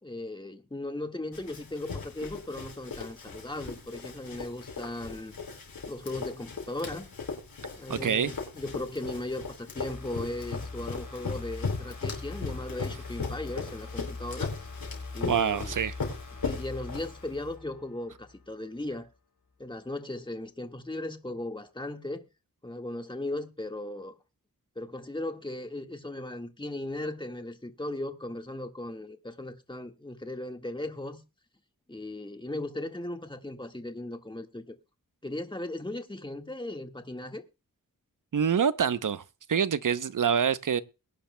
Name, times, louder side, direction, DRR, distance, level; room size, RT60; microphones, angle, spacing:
voice 1, 0.0-5.3 5.9-7.1 7.8-14.5 15.1-15.8 16.4-19.1 19.6-22.3 22.6-24.1 24.7-31.2 31.9-34.7 35.2-37.4, left 1 dB, 15° left, 1.6 m, -37 dB
Run, 1.3-17.5, left 4 dB, 90° left, 4.6 m, -38 dB
voice 2, 7.9-8.3 15.3-15.9 38.3-39.2 39.5-40.8, right 7 dB, 65° right, 0.8 m, -26 dB
sound 1, 9.8-18.5 18.9-19.0, left 3 dB, 65° left, 3.2 m, -42 dB
22.0 x 10.0 x 2.2 m
cardioid pair, 50°, 34 cm